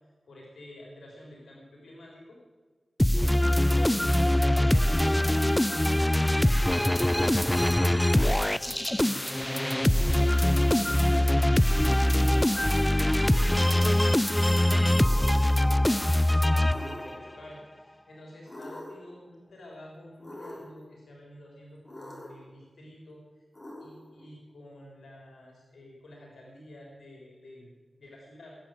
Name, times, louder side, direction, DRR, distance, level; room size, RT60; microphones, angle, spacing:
voice 1, 0.3-2.4 3.1-10.5 10.8-23.4 23.8-27.7 28.0-28.6, left 1 dB, 90° left, -2 dB, 3.7 m, -49 dB
sound 1, 3.0-17.3, left 1 dB, 10° left, 0.4 m, -23 dB
sound 2, 13.2-13.8 14.9-15.6 16.7-17.4 18.5-19.1 20.2-20.8 21.8-22.5 23.5-24.3, left 1 dB, 30° left, 5.9 m, -44 dB
20.0 x 7.9 x 9.0 m, 1.4 s
wide cardioid pair, 100°, 0 cm